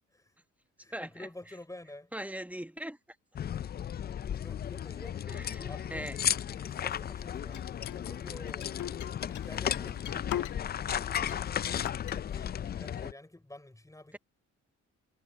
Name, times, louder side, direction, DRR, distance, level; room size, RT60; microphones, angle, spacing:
voice 1, 0.8-2.1 4.4-5.2 5.6-6.2 6.5-7.7 7.9-8.8 9.3-10.3 12.1-14.2, left 1 dB, 10° left, 6.1 m, -49 dB
voice 2, 2.1-3.0 5.3-6.2 9.8-9.9 13.0-13.1, right 1 dB, 5° right, 1.2 m, -40 dB
sound 1, 3.4-13.1, left 9 dB, 35° left, 0.4 m, -35 dB
sound 2, 7.5-10.8 11.2-12.2, left 12 dB, 75° left, 1.7 m, -40 dB
cardioid pair, 90°, 30 cm